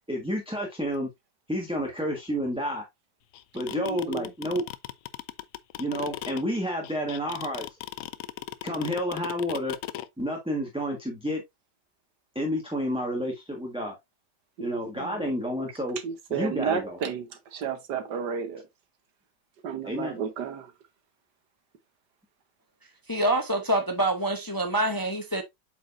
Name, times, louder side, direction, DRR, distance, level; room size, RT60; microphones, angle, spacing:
voice 1, 0.1-1.1 1.5-2.8 3.5-4.6 5.8-7.6 8.6-9.7 10.2-11.4 12.3-14.0 14.6-16.0 16.3-17.0 19.8-20.2, equal, 5° right, 1.3 m, -30 dB
sound 1, 3.3-10.1, left 13 dB, 75° left, 0.7 m, -36 dB
voice 2, 3.7-4.3 14.6-15.3 16.0-18.6 19.6-20.7, right 7 dB, 70° right, 1.6 m, -32 dB
voice 3, 23.1-25.4, right 1 dB, 25° left, 0.5 m, -26 dB
8.1 x 4.9 x 2.6 m
omnidirectional pair, 1.9 m